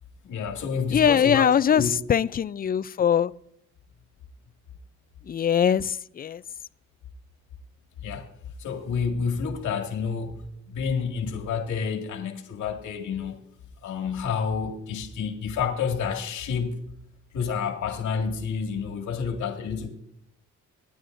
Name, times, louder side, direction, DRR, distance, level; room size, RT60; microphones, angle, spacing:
voice 1, 0.2-1.5 1.7-1.9 8.0-8.3 8.6-10.4 10.7-13.4 13.8-16.8 17.3-19.9, left 6 dB, 75° left, 2.0 m, -29 dB
voice 2, 0.9-3.3 5.3-6.4, left 8 dB, 30° left, 0.4 m, -22 dB
25.0 x 9.4 x 2.6 m
cardioid pair, 90°, 30 cm